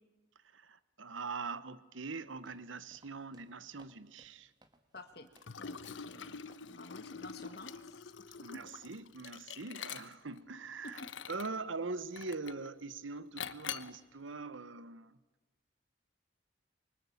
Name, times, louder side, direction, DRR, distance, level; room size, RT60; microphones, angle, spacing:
voice 1, 0.5-4.5 8.4-11.0 11.3-15.1, right 4 dB, 85° right, 1.1 m, -42 dB
sound 1, 2.2-5.6 5.8-6.1 6.5-6.8 7.4-7.7, right 1 dB, 20° right, 1.6 m, -66 dB
voice 2, 4.9-5.3 5.6-8.1 8.5-8.6 10.8-11.1, left 2 dB, 55° left, 1.6 m, -51 dB
Liquid, 5.4-10.4 10.8-11.6 12.2-12.7 13.4-14.0, left 7 dB, 80° left, 1.0 m, -45 dB
25.0 x 24.0 x 8.6 m
head